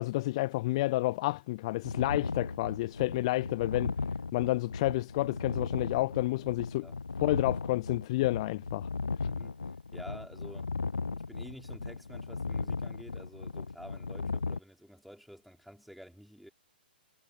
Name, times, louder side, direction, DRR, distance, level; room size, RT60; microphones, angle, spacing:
voice 1, 0.0-3.9 4.3-6.9 7.2-8.9, left 19 dB, 35° left, 0.3 m, -30 dB
sound 1, 1.8-14.6, left 4 dB, 75° left, 1.2 m, -36 dB
voice 2, 9.2-9.6 9.9-10.7 11.1-16.5, equal, ahead, 4.8 m, -50 dB
figure-of-eight pair, 120°, 5 cm